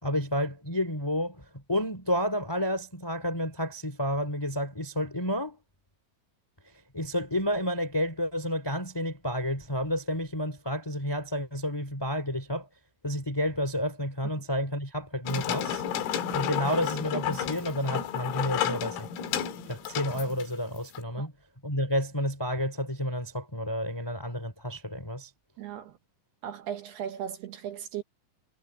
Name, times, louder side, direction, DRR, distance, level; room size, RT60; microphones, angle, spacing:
voice 1, 0.0-5.6 6.9-12.7 13.0-15.8 16.3-19.1 19.7-21.3 21.6-25.3, equal, 5° left, 2.4 m, -30 dB
sound 1, 15.3-21.0, left 9 dB, 85° left, 4.9 m, -32 dB
voice 2, 25.6-26.0 26.4-28.0, right 9 dB, 70° right, 2.7 m, -37 dB
omnidirectional pair, 5.9 m